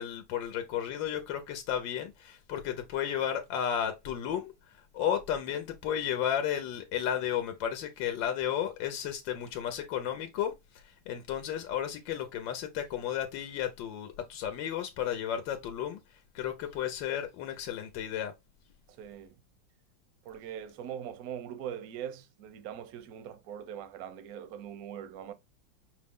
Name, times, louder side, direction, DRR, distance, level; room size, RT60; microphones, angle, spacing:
voice 1, 0.0-4.5 4.9-10.5 11.1-16.0 16.3-18.3, left 9 dB, 75° left, 1.3 m, -33 dB
voice 2, 18.9-19.4 20.2-25.3, right 9 dB, 65° right, 0.9 m, -41 dB
5.4 x 2.1 x 3.5 m
omnidirectional pair, 2.1 m